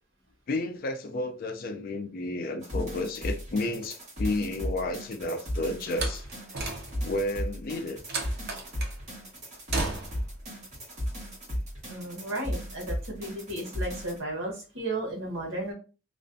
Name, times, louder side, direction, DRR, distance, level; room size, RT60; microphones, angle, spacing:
voice 1, 0.5-6.2 7.0-8.0, left 2 dB, 45° left, 0.3 m, -31 dB
sound 1, 2.6-14.2, equal, 35° right, 1.0 m, -35 dB
Slam, 5.9-7.2 8.1-9.0 9.7-10.3, right 3 dB, 50° right, 0.5 m, -34 dB
voice 2, 11.9-15.7, right 1 dB, 70° right, 0.9 m, -34 dB
2.4 x 2.1 x 2.5 m
head